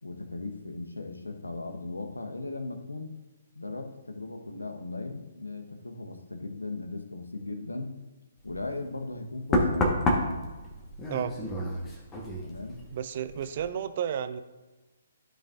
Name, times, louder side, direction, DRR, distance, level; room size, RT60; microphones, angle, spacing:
voice 1, 0.0-3.1 3.5-8.0 8.4-10.0 12.4-12.8, left 2 dB, 75° left, 5 dB, 1.2 m, -37 dB
Knock, 8.5-8.7 9.5-13.0 13.3-13.7, left 1 dB, 15° left, 1.4 m, -29 dB
voice 2, 12.9-14.4, right 9 dB, 40° right, 12 dB, 0.5 m, -32 dB
14.0 x 5.2 x 2.6 m, 1.2 s
figure-of-eight pair, 130°, 0 cm